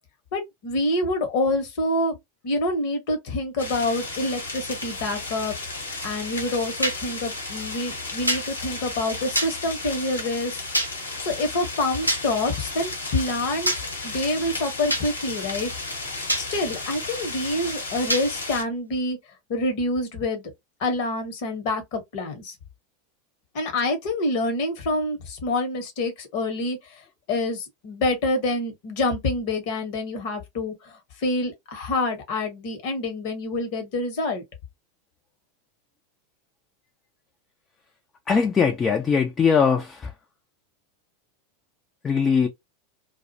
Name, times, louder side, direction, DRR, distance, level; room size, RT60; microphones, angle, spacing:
voice 1, 0.3-2.2 2.4-5.5 6.0-10.6 11.2-13.7 14.0-15.7 16.4-19.2 19.5-20.5 20.8-22.5 23.5-26.8 27.3-30.9 31.2-34.4, left 2 dB, 50° left, 0.8 m, -27 dB
sound 1, 3.6-18.6, left 3 dB, 75° left, 0.9 m, -34 dB
sound 2, 6.8-7.0 8.3-8.4 9.4-9.5 10.7-10.9 12.1-12.2 13.7-13.8 14.9-15.1 16.3-16.5 18.1-18.3, right 1 dB, 85° right, 0.4 m, -23 dB
voice 2, 38.3-40.0 42.0-42.5, left 6 dB, 20° left, 0.4 m, -20 dB
2.3 x 2.1 x 2.6 m
figure-of-eight pair, 85°, 0 cm